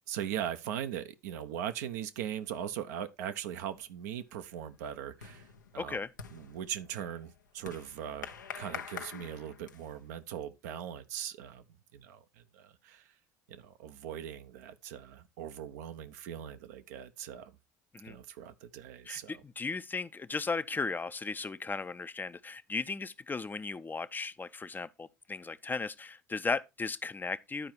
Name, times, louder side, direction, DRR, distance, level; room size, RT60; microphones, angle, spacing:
voice 1, 0.1-5.5 5.7-6.0 6.3-8.3 8.5-11.6 11.9-13.1 13.5-17.5 18.0-19.4, right 10 dB, 70° right, 0.7 m, -40 dB
sound 1, 3.7-3.9 4.3-10.1, left 7 dB, 90° left, 0.8 m, -46 dB
voice 2, 5.8-6.1 17.9-18.2 19.1-27.7, left 4 dB, 20° left, 0.5 m, -36 dB
11.0 x 4.7 x 4.4 m
hypercardioid pair, 65°, 9 cm